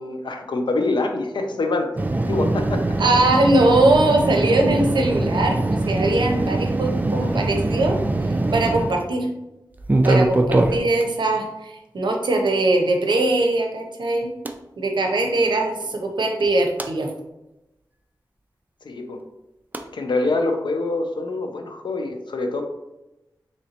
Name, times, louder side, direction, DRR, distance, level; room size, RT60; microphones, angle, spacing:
voice 1, 0.0-1.9 2.3-2.8 18.8-19.2 19.9-22.6, left 2 dB, 80° left, 4 dB, 0.5 m, -25 dB
sound 1, 2.0-9.0 9.8-11.0 12.5-12.6 14.4-14.5 16.4-16.9 19.7-19.8, right 2 dB, 20° right, 0.3 m, -22 dB
voice 2, 3.0-8.0 8.5-9.3 10.0-14.3 14.8-17.1, right 2 dB, 80° right, 3 dB, 0.6 m, -21 dB
3.9 x 3.1 x 2.8 m, 0.96 s
wide cardioid pair, 100°, 8 cm